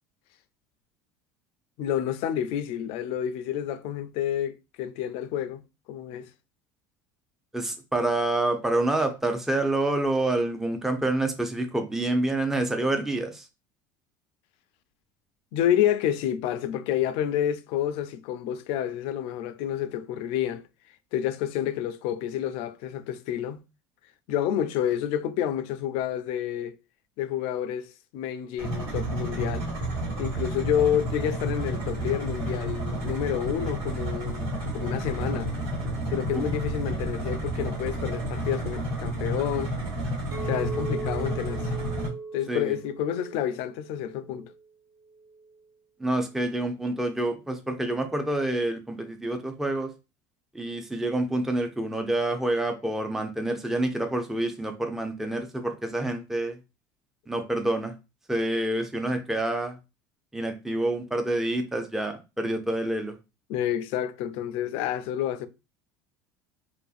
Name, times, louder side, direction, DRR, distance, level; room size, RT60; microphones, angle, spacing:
voice 1, 1.8-5.6 5.9-6.3 15.5-20.6 21.1-23.6 24.3-26.8 27.2-29.7 30.2-35.5 36.1-39.8 40.4-41.7 42.3-44.5 63.5-65.5, left 10 dB, 65° left, 0.4 m, -29 dB
voice 2, 7.5-13.5 36.3-36.4 42.5-42.8 46.0-49.9 50.5-56.6 57.3-57.9 58.3-59.8 60.3-63.2, right 2 dB, 5° right, 0.4 m, -27 dB
sound 1, 28.6-42.1, right 1 dB, 65° right, 1.3 m, -30 dB
Chink clink, 40.3-44.6 45.1-45.5, right 3 dB, 25° right, 1.3 m, -39 dB
2.5 x 2.5 x 2.4 m
supercardioid pair, 90°, 11 cm